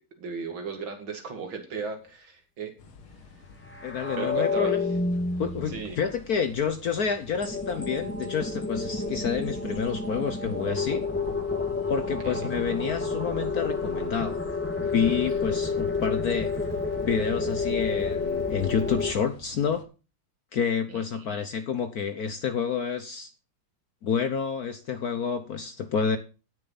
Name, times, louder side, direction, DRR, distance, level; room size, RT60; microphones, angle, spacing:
voice 1, 0.2-2.7 3.1-3.2 4.2-4.9 5.7-6.0 12.2-12.3 20.9-21.4, right 5 dB, 65° right, 2.9 m, -36 dB
sound 1, 2.8-19.8, left 3 dB, 90° left, 2.5 m, -49 dB
sound 2, 3.7-6.4 7.4-19.1, left 4 dB, 5° left, 1.6 m, -30 dB
voice 2, 3.8-4.8 5.4-11.1 11.9-14.4 14.8-16.5 17.0-19.9 20.5-23.3 24.0-26.2, left 6 dB, 60° left, 1.1 m, -29 dB
17.0 x 6.8 x 4.0 m
omnidirectional pair, 2.3 m